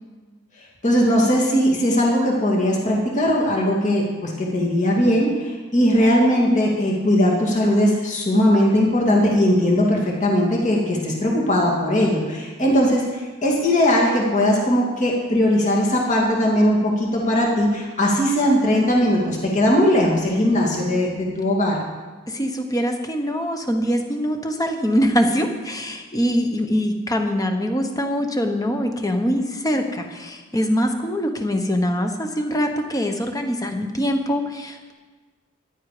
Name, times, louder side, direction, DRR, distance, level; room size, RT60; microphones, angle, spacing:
voice 1, 0.8-21.8, equal, 40° left, -2 dB, 2.5 m, -19 dB
voice 2, 22.3-34.9, equal, 20° left, 5 dB, 1.2 m, -23 dB
14.5 x 11.0 x 5.1 m, 1.3 s
head